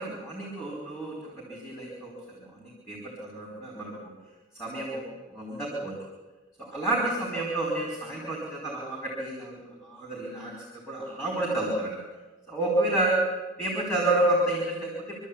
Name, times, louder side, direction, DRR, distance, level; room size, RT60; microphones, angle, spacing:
voice 1, 0.0-2.2 2.5-4.1 4.6-5.9 6.6-12.0 12.5-13.2 13.6-15.1, right 2 dB, 15° left, -3 dB, 4.8 m, -30 dB
25.5 x 13.0 x 8.7 m, 1.2 s
head